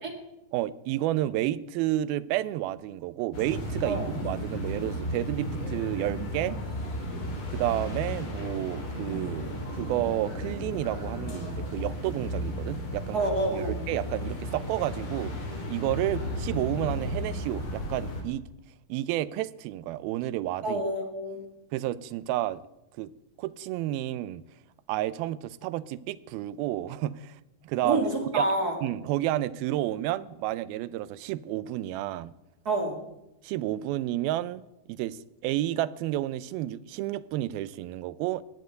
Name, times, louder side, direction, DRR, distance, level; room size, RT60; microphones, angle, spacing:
voice 1, 0.5-6.6 7.5-15.4 15.7-18.4 18.9-20.8 21.7-22.6 23.0-23.1 23.4-24.4 24.9-27.4 27.6-28.0 28.3-28.6 28.8-32.3 33.4-34.6 34.9-38.4, right 14 dB, 85° right, 2.5 m, -31 dB
sound 1, 3.3-18.2, left 1 dB, 40° left, 3.3 m, -34 dB
voice 2, 13.1-13.8 20.6-21.4 27.8-28.8 32.6-33.0, right 2 dB, 30° right, 2.0 m, -28 dB
20.0 x 7.8 x 7.9 m
omnidirectional pair, 4.2 m